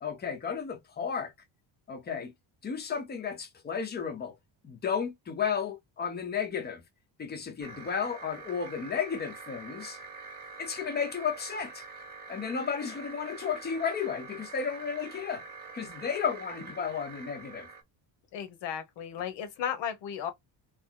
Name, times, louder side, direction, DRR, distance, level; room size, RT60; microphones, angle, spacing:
voice 1, 0.0-1.3 1.9-2.3 2.6-4.3 4.6-6.8 7.2-10.0 10.6-11.8 12.3-15.4 15.7-17.7, left 6 dB, 25° left, 0.7 m, -33 dB
sound 1, 7.6-17.8, right 4 dB, 20° right, 0.9 m, -45 dB
voice 2, 18.3-20.3, left 9 dB, 80° left, 1.1 m, -35 dB
2.9 x 2.6 x 3.8 m
cardioid pair, 180°, 43 cm